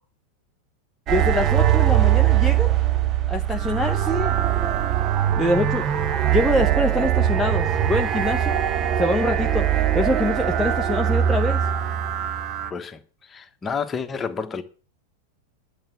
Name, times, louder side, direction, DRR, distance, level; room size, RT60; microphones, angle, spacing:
voice 1, 1.1-2.7 3.3-4.3 5.4-5.8 6.3-8.6 9.0-9.7 9.9-11.6, left 1 dB, ahead, 0.8 m, -24 dB
sound 1, 1.1-12.7, right 11 dB, 30° right, 0.9 m, -21 dB
voice 2, 13.3-14.6, left 5 dB, 20° left, 1.3 m, -29 dB
11.0 x 6.8 x 8.4 m
figure-of-eight pair, 90°, 0 cm